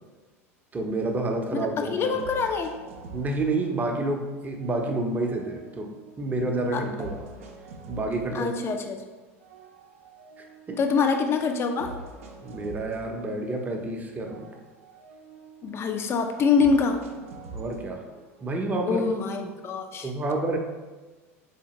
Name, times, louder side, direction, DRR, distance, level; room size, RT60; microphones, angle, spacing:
voice 1, 0.7-2.2 3.1-5.9 6.2-7.2 7.9-8.5 10.7-10.8 12.4-14.5 17.5-18.0 18.4-19.0 20.0-20.6, right 2 dB, 20° right, 2 dB, 0.6 m, -29 dB
voice 2, 1.5-2.8 6.7-6.8 8.3-9.0 10.8-12.0 15.6-17.0 18.9-20.1, left 5 dB, 35° left, 5 dB, 0.5 m, -25 dB
sound 1, 2.2-4.2 4.6-6.4 7.0-9.0 9.4-11.2 11.8-13.9 14.2-16.0 16.6-18.6, right 2 dB, 70° right, 0.5 m, -45 dB
4.1 x 2.8 x 2.9 m, 1.2 s
figure-of-eight pair, 75°, 8 cm